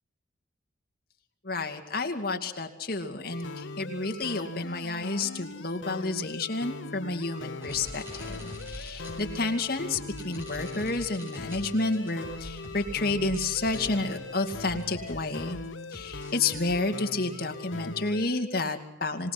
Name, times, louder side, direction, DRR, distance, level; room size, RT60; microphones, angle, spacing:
voice 1, 1.4-8.4 8.7-15.6 15.9-19.3, left 3 dB, 50° left, 5 dB, 2.4 m, -30 dB
sound 1, 3.3-18.3, left 3 dB, 80° left, 1.0 m, -40 dB
sound 2, 7.6-16.7, left 1 dB, 15° right, 7.8 m, -44 dB
26.0 x 19.5 x 6.0 m, 0.90 s
head